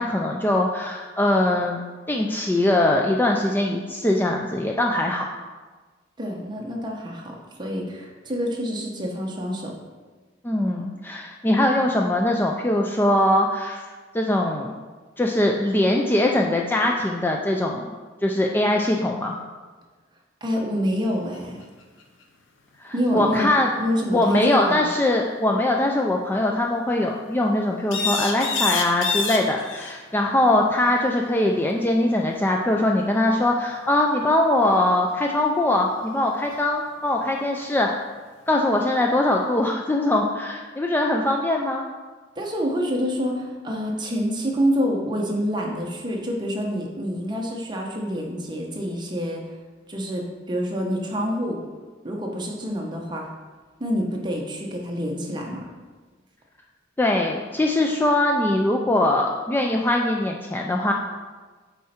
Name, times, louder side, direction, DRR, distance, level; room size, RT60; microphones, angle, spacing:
voice 1, 0.0-1.8 2.1-5.2 10.4-13.8 14.1-14.7 15.2-17.9 18.2-19.4 22.8-23.7 24.1-38.0 38.5-41.8 57.0-60.9, left 1 dB, 10° left, 0 dB, 0.4 m, -22 dB
voice 2, 6.2-9.7 20.4-21.6 22.9-23.5 23.8-24.9 42.4-49.4 49.9-51.6 52.0-53.3 53.8-55.6, equal, 25° right, 0 dB, 1.0 m, -27 dB
sound 1, 21.3-21.4 21.6-22.2 27.9-30.0 32.8-32.9 36.5-36.6, left 5 dB, 75° left, 0.7 m, -26 dB
7.2 x 4.3 x 4.3 m, 1.4 s
head